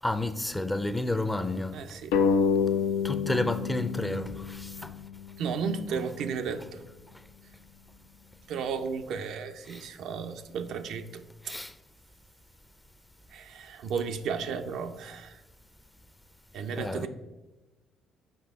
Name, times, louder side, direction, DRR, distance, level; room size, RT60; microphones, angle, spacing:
voice 1, 0.0-1.8 3.0-4.9 9.7-9.8 11.4-11.7 16.8-17.1, left 2 dB, 10° left, 0.6 m, -30 dB
voice 2, 1.7-2.1 5.4-6.8 8.5-11.5 13.3-15.4 16.5-17.1, right 6 dB, 70° right, 0.4 m, -34 dB
sound 1, 2.1-5.3, left 6 dB, 80° left, 0.5 m, -28 dB
6.0 x 5.1 x 3.5 m
hypercardioid pair, 55°, 0 cm